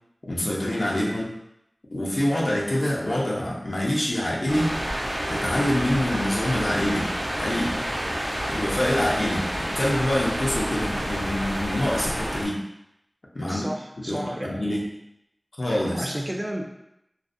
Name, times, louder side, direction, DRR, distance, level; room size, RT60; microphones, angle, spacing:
voice 1, 0.2-1.3 1.9-4.7 5.3-7.8 8.5-12.6 13.3-13.7 14.1-14.8 15.6-16.1, left 1 dB, 70° left, -4 dB, 0.6 m, -26 dB
sound 1, 4.5-12.4, equal, 75° right, 0.7 m, -29 dB
voice 2, 13.5-14.6 15.9-16.7, equal, 30° right, 1 dB, 0.4 m, -32 dB
2.4 x 2.0 x 2.5 m, 0.81 s
wide cardioid pair, 40°, 0 cm